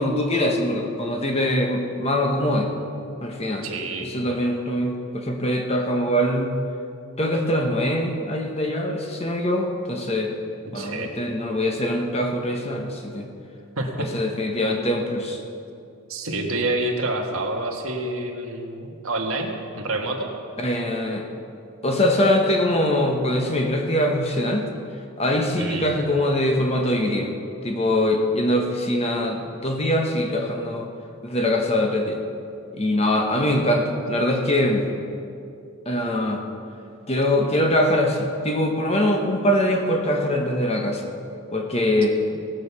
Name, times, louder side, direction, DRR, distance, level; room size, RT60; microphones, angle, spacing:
voice 1, 0.0-2.7 3.2-3.6 4.0-6.5 7.2-10.3 10.7-13.3 14.0-15.4 20.6-21.3 21.8-24.7 25.2-27.3 27.6-30.9 31.2-32.2 32.7-34.9 35.8-36.4 37.1-41.1 41.5-42.2, left 1 dB, 30° left, 2 dB, 1.1 m, -23 dB
voice 2, 3.6-4.2 10.7-11.1 13.8-14.1 16.1-19.5 19.7-20.3 25.5-25.9, right 2 dB, 70° right, 2 dB, 1.5 m, -28 dB
17.5 x 6.5 x 6.9 m, 2.6 s
head